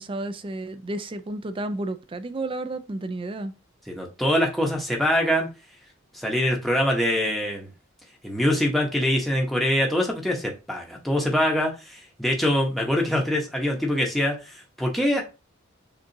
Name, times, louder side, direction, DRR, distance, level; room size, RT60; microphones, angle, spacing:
voice 1, 0.0-3.5, right 2 dB, 25° right, 0.4 m, -32 dB
voice 2, 3.9-5.5 6.1-7.7 8.2-15.2, left 1 dB, ahead, 0.8 m, -24 dB
6.6 x 2.4 x 2.7 m
head